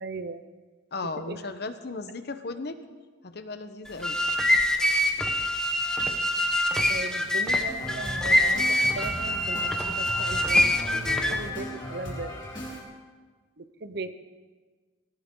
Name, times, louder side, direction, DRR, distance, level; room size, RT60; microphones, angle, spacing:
voice 1, 0.0-0.5 1.3-1.4 6.9-10.9 11.2-12.4 13.6-14.1, right 3 dB, 55° right, 10 dB, 0.8 m, -37 dB
voice 2, 0.9-2.8 3.2-4.2, left 3 dB, 55° left, 10 dB, 0.9 m, -36 dB
willow-flute, 3.9-11.5, left 1 dB, 5° left, 0.9 m, -25 dB
sound 1, 7.7-12.8, equal, 25° left, 4.3 m, -37 dB
18.5 x 17.5 x 3.8 m, 1.4 s
head